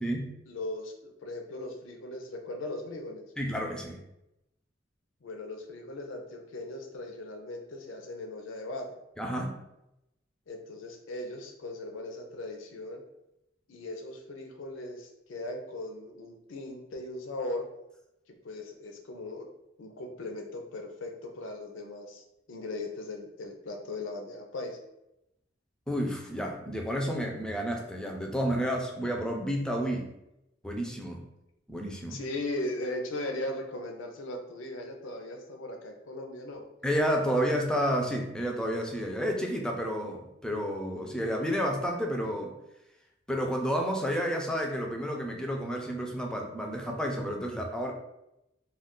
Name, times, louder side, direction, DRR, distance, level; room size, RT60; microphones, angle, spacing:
voice 1, 0.5-3.3 5.2-8.9 10.5-13.0 13.7-17.7 18.4-19.5 19.8-24.8 32.1-36.6, left 2 dB, 85° left, 3 dB, 0.5 m, -38 dB
voice 2, 3.4-4.0 9.2-9.6 25.9-30.1 30.6-31.2 31.7-32.2 36.8-42.5 43.3-47.9, equal, 5° left, 1 dB, 0.4 m, -30 dB
2.4 x 2.3 x 3.6 m, 0.87 s
head